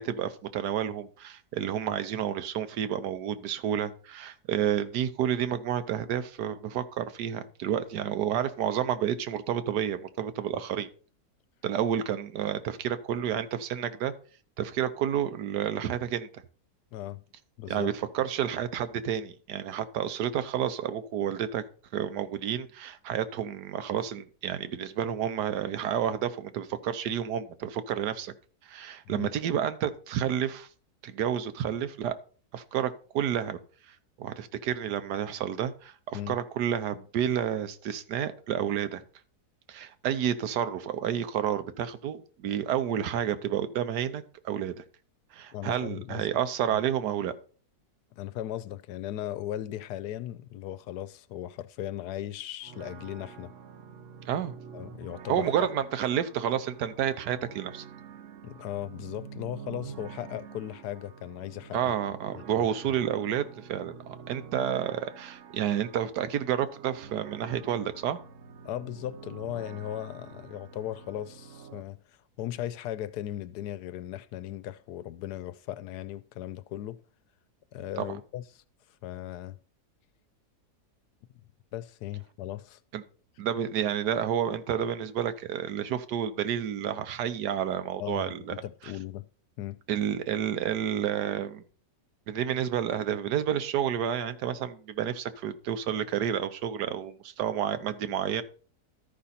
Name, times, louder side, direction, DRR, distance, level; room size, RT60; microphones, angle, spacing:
voice 1, 0.0-10.9 11.6-14.1 14.6-16.4 17.7-21.6 21.9-28.3 28.6-30.7 31.0-32.1 32.5-33.6 34.2-39.0 39.7-44.8 45.3-47.3 54.3-54.5 55.3-57.8 61.7-63.9 64.3-68.2 78.0-78.1 82.9-83.0 83.4-88.5 88.8-88.9 89.9-91.6 92.3-98.4, right 9 dB, 85° right, 1.4 m, -30 dB
voice 2, 16.9-17.2 17.6-17.9 29.1-29.3 36.1-36.4 45.5-46.3 48.2-53.5 54.7-55.5 58.4-61.9 62.5-63.0 68.6-72.0 72.4-77.0 77.7-78.6 79.0-79.6 81.7-82.8 88.0-89.3 89.6-89.8, left 12 dB, 85° left, 1.2 m, -37 dB
sound 1, 52.6-71.8, right 6 dB, 55° right, 1.0 m, -47 dB
13.0 x 5.2 x 4.2 m
omnidirectional pair, 1.7 m